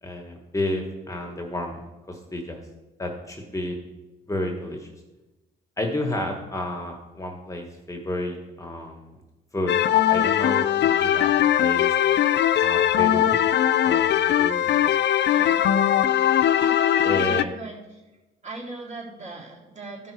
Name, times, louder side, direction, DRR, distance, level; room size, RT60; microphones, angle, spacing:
voice 1, 0.0-1.8 2.1-2.6 3.0-3.8 4.3-4.9 5.8-9.2 9.5-9.7 10.1-11.3 11.6-11.9 12.6-13.4 13.8-14.9 17.0-17.5, left 1 dB, 15° left, 2 dB, 1.4 m, -31 dB
sound 1, 9.7-17.4, left 11 dB, 60° left, 0.5 m, -20 dB
voice 2, 15.2-15.7 16.6-18.0 18.4-20.1, right 2 dB, 35° right, -3 dB, 3.9 m, -38 dB
14.5 x 5.3 x 4.7 m, 1.1 s
cardioid pair, 90°, 20 cm